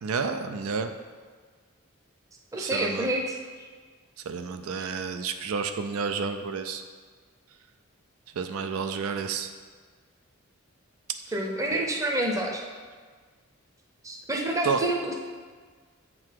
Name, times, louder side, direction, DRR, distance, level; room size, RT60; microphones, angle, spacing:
voice 1, 0.0-0.9 2.6-3.1 4.3-6.8 8.4-9.5 11.7-11.8 14.6-14.8, right 5 dB, 85° right, 8 dB, 0.4 m, -30 dB
voice 2, 2.5-3.3 4.8-4.9 11.3-12.6 14.0-15.2, right 1 dB, 15° right, 1 dB, 0.6 m, -28 dB
7.5 x 3.9 x 4.6 m, 1.5 s
head